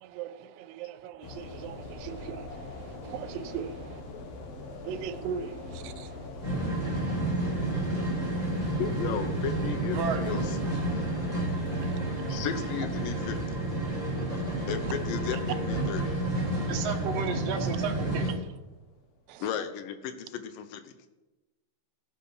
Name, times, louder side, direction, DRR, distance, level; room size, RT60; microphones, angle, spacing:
voice 1, 0.0-4.0 4.8-6.3 10.9-12.5 13.8-14.7 16.5-16.8 19.3-19.4, right 8 dB, 90° right, 12 dB, 2.4 m, -41 dB
sound 1, 1.2-19.1, left 2 dB, 60° left, 1.9 m, -43 dB
sound 2, 6.4-18.3, right 2 dB, 15° left, 1.3 m, -30 dB
voice 2, 8.8-10.6 12.3-13.6 14.7-16.1 19.4-20.9, left 9 dB, 80° left, 10 dB, 2.5 m, -35 dB
voice 3, 9.9-10.2 16.7-18.2, right 6 dB, 60° right, 2 dB, 2.0 m, -32 dB
16.0 x 7.1 x 4.8 m, 1.1 s
omnidirectional pair, 4.0 m